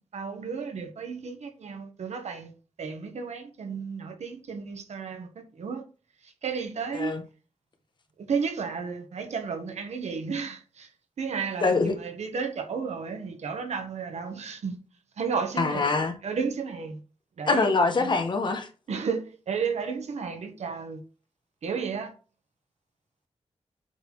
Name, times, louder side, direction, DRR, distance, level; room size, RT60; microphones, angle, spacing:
voice 1, 0.1-2.5 2.8-5.8 6.2-7.1 8.3-10.9 11.2-14.8 15.2-16.0 16.2-17.0 17.4-18.1 18.9-21.0 21.6-22.1, right 5 dB, 80° right, 1.3 m, -33 dB
voice 2, 11.6-11.9 15.6-16.1 17.5-18.7, left 3 dB, 45° left, 1.2 m, -24 dB
8.0 x 4.1 x 4.6 m
wide cardioid pair, 175°, 11 cm